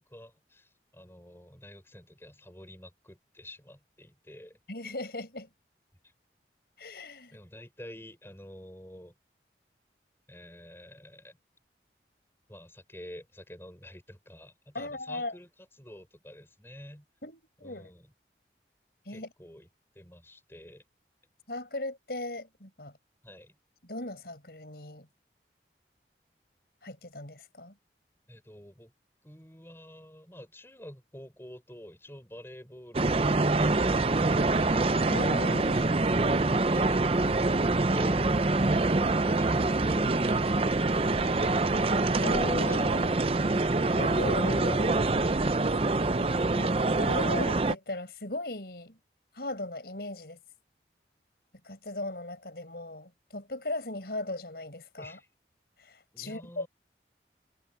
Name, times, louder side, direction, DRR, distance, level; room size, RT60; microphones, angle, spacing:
voice 1, 0.0-4.6 6.0-6.1 7.3-9.2 10.3-11.4 12.5-15.5 15.8-17.0 17.6-18.1 19.1-19.7 19.9-20.8 23.2-23.5 28.3-28.9 29.2-35.0 36.1-38.2 38.7-41.0 41.3-41.4 41.7-41.9 42.4-43.1 43.4-43.8 55.0-55.3 56.1-56.7, left 1 dB, 15° left, 6.6 m, -48 dB
voice 2, 4.7-5.5 6.8-7.4 14.7-15.4 17.2-17.9 19.1-19.3 21.5-22.9 23.8-25.1 26.8-27.7 35.1-35.9 42.2-43.6 43.9-45.0 46.1-49.0 49.3-50.4 51.6-55.2 55.8-56.7, left 2 dB, 65° left, 5.2 m, -38 dB
sound 1, 32.9-47.7, right 2 dB, 35° right, 0.6 m, -25 dB
head